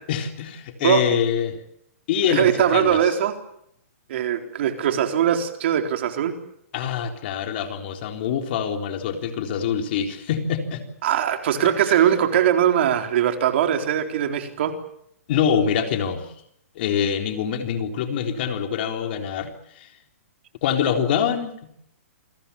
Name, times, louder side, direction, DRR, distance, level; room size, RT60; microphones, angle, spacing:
voice 1, 0.1-1.6 2.1-3.1 6.7-10.9 11.6-11.8 15.3-16.3 16.8-19.9 20.6-21.5, left 8 dB, 45° left, 5 dB, 3.9 m, -25 dB
voice 2, 0.8-1.2 2.2-3.3 4.1-6.3 11.0-14.7, right 10 dB, 50° right, 5 dB, 4.0 m, -21 dB
28.5 x 21.5 x 7.2 m, 0.72 s
hypercardioid pair, 155°, 8 cm